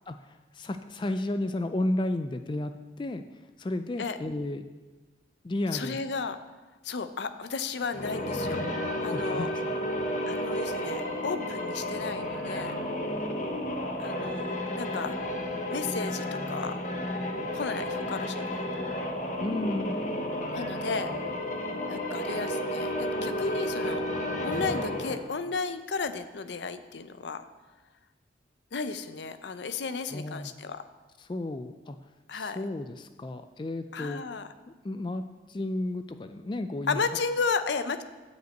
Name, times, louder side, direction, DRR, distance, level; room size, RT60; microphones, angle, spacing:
voice 1, 0.1-3.2 3.6-4.7 5.4-6.0 9.1-9.6 19.4-20.0 30.1-30.5 31.2-32.0 32.3-34.2 34.7-35.2 35.5-37.0, left 1 dB, 25° left, 9 dB, 0.3 m, -32 dB
voice 2, 5.7-6.4 6.8-9.5 10.3-12.8 14.0-15.1 15.7-16.8 17.5-18.6 20.5-21.1 21.9-27.5 28.7-30.8 32.3-32.6 33.9-34.5 36.9-38.0, left 4 dB, 70° left, 11 dB, 0.6 m, -34 dB
sound 1, 7.8-25.3, left 1 dB, 45° left, 1.1 m, -32 dB
9.3 x 5.2 x 7.8 m, 1.2 s
head